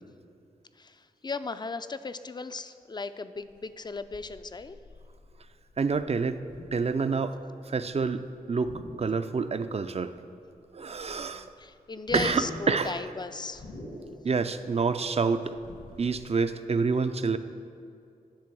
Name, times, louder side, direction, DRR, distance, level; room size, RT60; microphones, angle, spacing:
voice 1, 0.7-4.8 11.1-13.7, left 3 dB, 25° left, 12 dB, 0.4 m, -37 dB
sound 1, 3.4-8.2 8.5-9.8 10.1-10.2 10.5-16.2, left 1 dB, 80° left, 1.8 m, -44 dB
voice 2, 5.8-6.4 6.7-7.4 7.7-10.1 10.7-11.5 12.1-13.0 14.2-15.6 16.0-17.4, right 4 dB, 40° right, 11 dB, 0.5 m, -27 dB
10.5 x 3.5 x 6.1 m, 2.4 s
cardioid pair, 45°, 16 cm